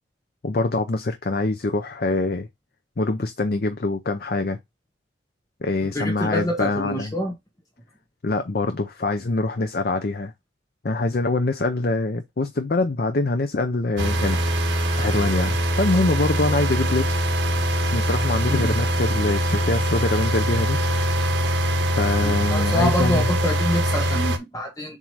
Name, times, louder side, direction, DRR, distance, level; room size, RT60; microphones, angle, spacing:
voice 1, 0.4-2.5 3.0-4.6 5.6-7.1 8.2-10.3 10.8-14.4 15.0-17.2 17.9-20.8 22.0-23.3, left 2 dB, 50° left, 0.6 m, -24 dB
voice 2, 5.8-7.3 18.5-18.7 22.2-25.0, equal, 15° left, 0.9 m, -26 dB
sound 1, 14.0-24.4, equal, 75° right, 1.3 m, -23 dB
7.3 x 2.7 x 4.7 m
head